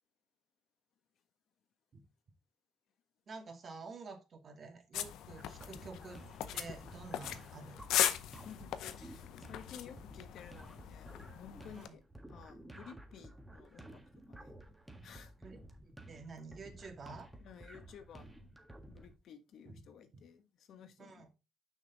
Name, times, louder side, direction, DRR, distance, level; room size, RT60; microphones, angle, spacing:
voice 1, 3.3-6.2 6.5-7.8 11.7-11.9 15.4-17.3 19.7-19.9 21.0-21.3, right 4 dB, 50° right, 2.2 m, -50 dB
sound 1, 4.9-11.9, left 11 dB, 90° left, 0.7 m, -39 dB
sound 2, 5.4-19.2, right 1 dB, 10° right, 1.5 m, -54 dB
voice 2, 8.4-12.0 12.3-14.6 15.0-15.3 17.4-18.5 18.9-21.3, left 8 dB, 70° left, 1.2 m, -54 dB
6.4 x 5.9 x 4.0 m
cardioid pair, 90°, 0 cm